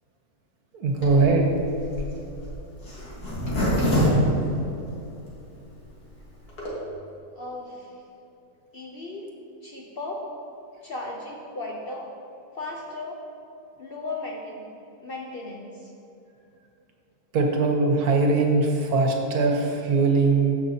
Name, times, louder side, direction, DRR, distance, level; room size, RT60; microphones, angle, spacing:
voice 1, 0.7-1.4 17.3-20.6, right 3 dB, 75° right, 2 dB, 1.5 m, -21 dB
Zipper (clothing), 1.0-5.3 5.8-5.9 6.0-6.1 6.4-6.7, equal, 75° left, 2.3 m, -26 dB
voice 2, 7.4-7.9 8.7-9.3 9.6-10.3 10.8-12.1 12.5-13.2 13.8-14.6 15.0-15.9, left 2 dB, 50° left, -1 dB, 0.7 m, -36 dB
14.0 x 5.6 x 2.8 m, 2.8 s
omnidirectional pair, 1.7 m